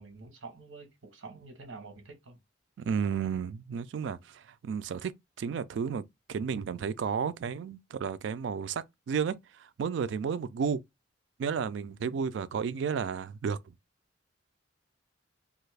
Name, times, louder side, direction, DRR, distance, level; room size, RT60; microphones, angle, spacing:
voice 1, 0.0-2.4, right 3 dB, 90° right, 0.9 m, -47 dB
voice 2, 2.8-5.1 5.4-6.0 6.3-10.8 11.4-13.7, right 6 dB, 65° right, 0.3 m, -32 dB
2.6 x 2.4 x 3.2 m
head